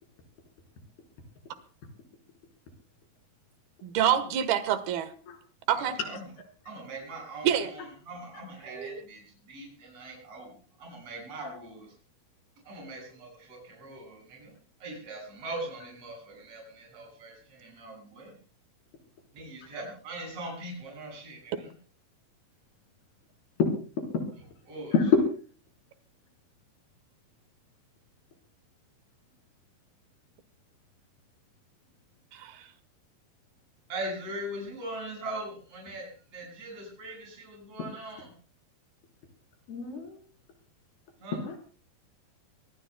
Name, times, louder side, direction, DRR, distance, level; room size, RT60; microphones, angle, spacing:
voice 1, 3.8-5.1 5.7-6.0 7.4-7.7 8.7-9.0 32.3-32.7, right 9 dB, 80° right, 11 dB, 3.2 m, -27 dB
voice 2, 5.8-6.2 6.7-11.9 12.6-14.5 14.8-18.3 19.3-21.7 24.7-24.9 33.9-38.3 41.2-41.4, right 1 dB, 40° right, -1 dB, 7.4 m, -41 dB
voice 3, 23.6-24.2 24.9-25.2 39.7-40.2 41.4-41.6, left 5 dB, 90° left, 2 dB, 6.0 m, -26 dB
25.0 x 20.0 x 2.2 m, 0.40 s
omnidirectional pair, 4.4 m